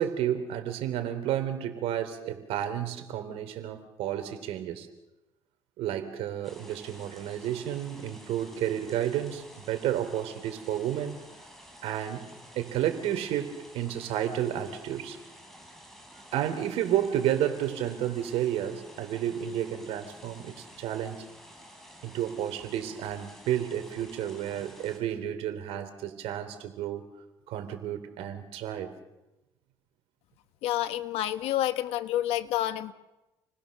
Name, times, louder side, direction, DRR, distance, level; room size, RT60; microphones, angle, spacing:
voice 1, 0.0-4.9 5.8-11.2 11.8-12.3 12.5-15.2 16.3-21.3 22.0-27.0 27.5-28.9, right 11 dB, 85° right, 8 dB, 3.6 m, -31 dB
sound 1, 6.4-25.0, equal, 5° left, 6.3 m, -51 dB
voice 2, 30.6-32.9, left 13 dB, 90° left, 11 dB, 1.3 m, -29 dB
29.5 x 21.0 x 6.7 m, 1.0 s
cardioid pair, 110°, 10 cm